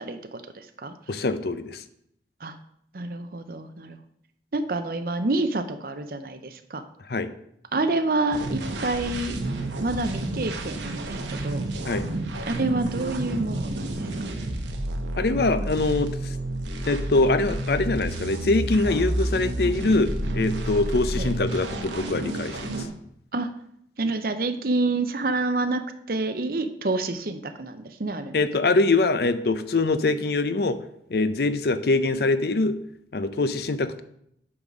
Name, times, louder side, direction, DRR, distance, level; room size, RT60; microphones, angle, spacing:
voice 1, 0.0-0.9 2.4-2.5 2.9-4.0 4.5-6.8 7.7-9.4 9.8-11.6 12.5-13.9 21.2-21.3 23.3-23.5 24.0-28.4, right 2 dB, 55° right, 9 dB, 0.7 m, -28 dB
voice 2, 1.1-1.8 7.1-7.3 11.9-12.1 15.2-16.3 16.8-22.8 28.3-30.8 31.1-32.7 33.1-34.0, left 3 dB, 60° left, 12 dB, 0.5 m, -23 dB
sound 1, 8.3-22.9, right 1 dB, 85° right, 1.0 m, -30 dB
8.7 x 4.0 x 6.1 m, 0.73 s
head